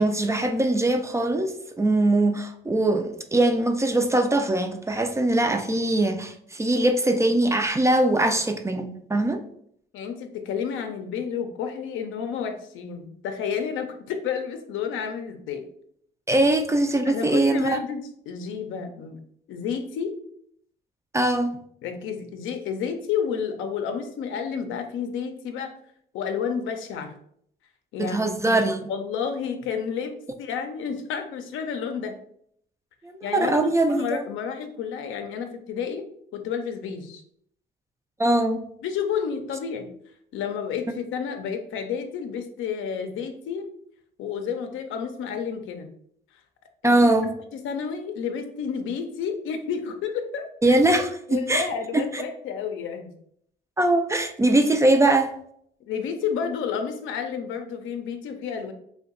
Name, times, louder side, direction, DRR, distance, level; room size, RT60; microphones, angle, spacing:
voice 1, 0.0-9.4 16.3-17.8 21.1-21.6 28.0-28.9 33.0-34.2 38.2-38.6 46.8-47.3 50.6-51.7 51.9-52.2 53.8-55.3, right 2 dB, 15° right, 0.3 m, -22 dB
voice 2, 9.9-15.6 17.1-19.2 19.5-20.2 21.8-25.7 26.1-27.2 27.9-28.6 28.9-32.2 33.2-36.1 36.3-37.2 38.8-39.9 40.3-43.6 44.2-45.9 46.8-47.1 47.6-50.8 51.3-53.1 55.9-58.7, left 7 dB, 85° left, 0.5 m, -30 dB
2.7 x 2.2 x 3.7 m
cardioid pair, 90°, 20 cm